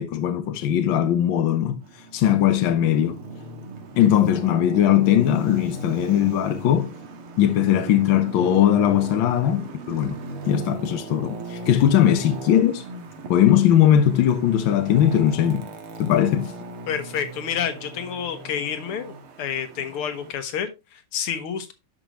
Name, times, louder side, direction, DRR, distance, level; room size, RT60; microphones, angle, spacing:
voice 1, 0.0-1.7 2.1-3.2 4.0-6.9 7.4-10.2 10.5-12.8 13.3-15.6 16.0-16.5, left 10 dB, 70° left, 1.6 m, -19 dB
Traffic noise roadway noise, 1.8-20.3, right 3 dB, 85° right, 2.2 m, -38 dB
voice 2, 16.9-21.7, left 8 dB, 90° left, 2.1 m, -29 dB
11.5 x 5.1 x 3.0 m
omnidirectional pair, 2.3 m